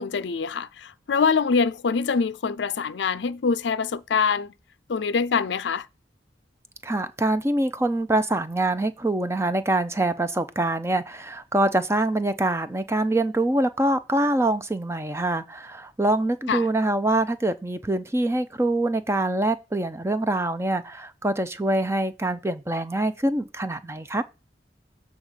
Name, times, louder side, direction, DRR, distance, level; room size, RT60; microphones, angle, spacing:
voice 1, 0.0-4.5 4.9-5.9 16.5-16.7, left 5 dB, 85° left, 0.5 m, -24 dB
voice 2, 6.8-24.2, right 1 dB, 15° right, 0.6 m, -24 dB
7.7 x 3.5 x 6.6 m
head